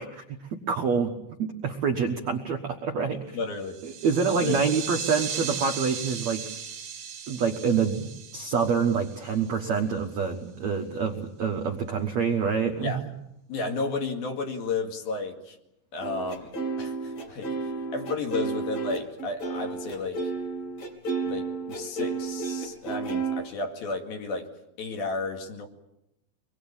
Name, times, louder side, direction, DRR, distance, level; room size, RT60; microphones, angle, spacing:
voice 1, 0.0-3.4 3.8-6.4 7.3-13.1, right 5 dB, 65° right, 3 dB, 1.7 m, -27 dB
voice 2, 3.3-3.8 4.4-4.6 12.8-13.0 13.5-15.6 15.9-16.5 16.8-20.2 21.2-24.5 24.8-25.7, left 3 dB, 60° left, 4 dB, 3.8 m, -32 dB
sound 1, 3.6-9.7, right 8 dB, 90° right, 1.1 m, -37 dB
sound 2, 16.0-23.4, right 4 dB, 40° left, 4.3 m, -31 dB
25.0 x 22.0 x 8.8 m, 0.86 s
omnidirectional pair, 5.2 m